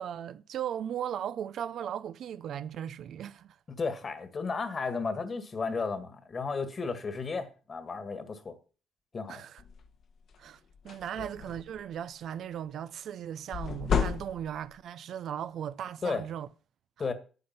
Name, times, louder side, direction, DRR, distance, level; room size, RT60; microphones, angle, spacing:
voice 1, 0.0-3.6 9.3-9.6 10.4-10.6 10.8-16.5 17.0-17.1, right 9 dB, 70° right, 0.5 m, -37 dB
voice 2, 3.8-8.5 9.1-9.4 11.2-11.3 16.0-16.2 17.0-17.1, left 4 dB, 40° left, 1.9 m, -33 dB
sound 1, 9.6-9.9 10.3-10.5 10.7-11.8 13.5-14.8, left 6 dB, 65° left, 1.4 m, -31 dB
9.9 x 8.6 x 5.8 m
cardioid pair, 90°, 0 cm